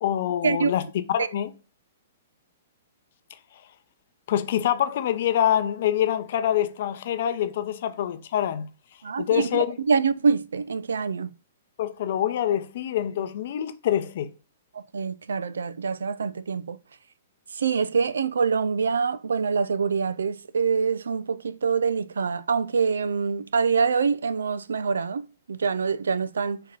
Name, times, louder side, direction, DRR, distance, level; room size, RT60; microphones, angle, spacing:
voice 1, 0.0-1.5 4.3-8.7 9.2-9.8 11.8-14.3, left 10 dB, 60° left, 0.6 m, -25 dB
voice 2, 9.0-11.3 14.7-16.8 17.5-26.6, right 5 dB, 85° right, 0.3 m, -25 dB
4.4 x 2.9 x 3.8 m
hypercardioid pair, 125°, 0 cm